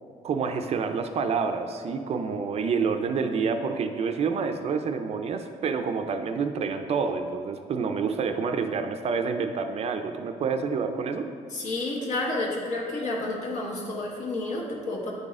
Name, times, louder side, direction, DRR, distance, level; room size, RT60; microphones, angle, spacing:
voice 1, 0.2-11.3, right 5 dB, 50° right, 7 dB, 0.4 m, -28 dB
voice 2, 11.5-15.1, left 2 dB, 60° left, -2 dB, 1.3 m, -30 dB
9.0 x 4.0 x 3.6 m, 2.1 s
cardioid pair, 140°, 14 cm